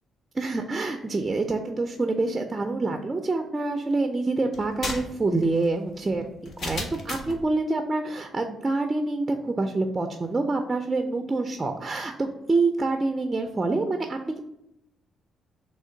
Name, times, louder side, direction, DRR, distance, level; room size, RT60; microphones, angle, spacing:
voice 1, 0.3-14.4, right 3 dB, 25° right, 5 dB, 0.5 m, -26 dB
sound 1, 4.5-7.4, left 2 dB, 55° left, 0.9 m, -35 dB
3.7 x 3.0 x 4.4 m, 0.85 s
cardioid pair, 90°, 0 cm